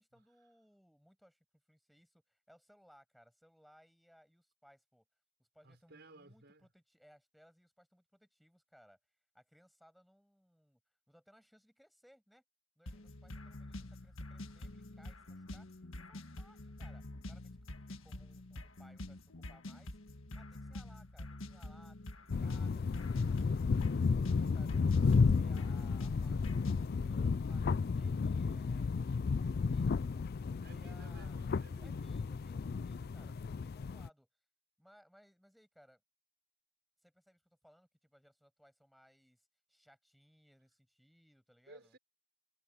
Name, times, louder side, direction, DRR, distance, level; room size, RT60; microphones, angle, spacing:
voice 1, 0.0-5.0 5.4-9.0 9.3-10.8 11.1-12.4 12.8-20.0 20.3-24.8 25.3-28.9 29.4-30.3 30.6-31.4 31.8-34.3 34.8-36.0 37.0-42.0, equal, ahead, 7.1 m, -65 dB
voice 2, 5.6-6.7 30.6-32.0 41.7-42.0, right 2 dB, 55° right, 5.9 m, -57 dB
sound 1, 12.9-26.9, left 1 dB, 85° left, 1.6 m, -47 dB
sound 2, 22.3-34.1, left 5 dB, 50° left, 0.4 m, -32 dB
head